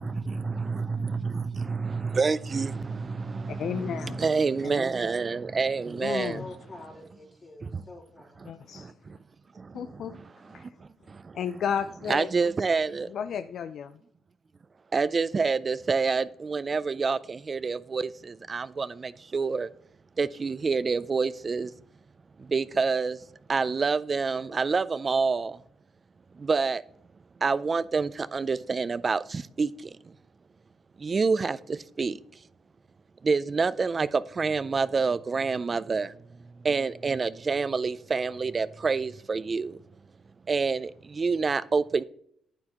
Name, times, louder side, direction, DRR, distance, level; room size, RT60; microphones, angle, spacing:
voice 1, 0.0-6.4 7.6-7.8 8.7-9.2 9.6-10.2 10.5-10.7 11.1-11.4 12.1-13.1 14.9-19.7 20.2-21.7 22.4-23.2 23.5-25.6 26.4-26.8 27.4-29.9 31.0-32.2 33.2-36.1 36.6-39.8 40.5-42.0, right 4 dB, 35° right, 0.3 m, -28 dB
voice 2, 3.4-4.2 4.6-4.8 6.0-6.5 8.5-8.9 9.7-10.2 10.5-10.7 11.3-12.3 13.1-14.0, left 8 dB, 65° left, 0.4 m, -33 dB
voice 3, 5.8-8.5, left 2 dB, 40° left, 3.4 m, -47 dB
9.6 x 8.7 x 2.9 m
cardioid pair, 90°, 0 cm